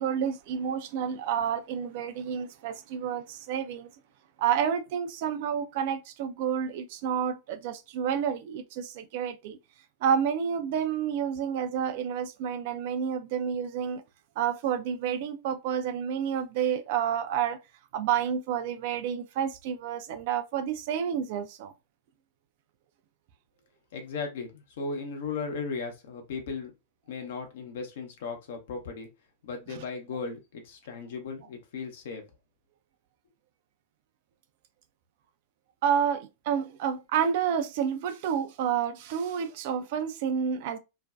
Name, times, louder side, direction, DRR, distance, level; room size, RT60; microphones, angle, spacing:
voice 1, 0.0-3.9 4.4-9.6 10.0-14.0 14.4-17.6 17.9-21.7 35.8-40.8, right 8 dB, 55° right, 0.3 m, -29 dB
voice 2, 23.9-26.7 27.1-29.1 29.4-32.2, left 4 dB, 65° left, 0.7 m, -36 dB
2.4 x 2.2 x 2.3 m
figure-of-eight pair, 95°, 0 cm